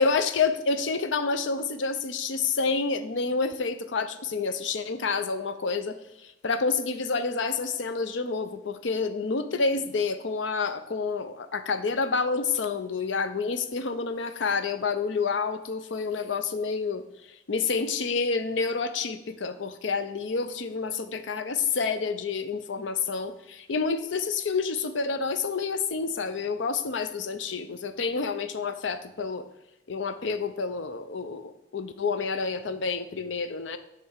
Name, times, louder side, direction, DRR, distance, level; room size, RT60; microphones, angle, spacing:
voice 1, 0.0-17.0 17.5-29.5 29.9-33.8, left 4 dB, 85° left, 10 dB, 0.6 m, -28 dB
7.5 x 3.4 x 6.4 m, 0.91 s
head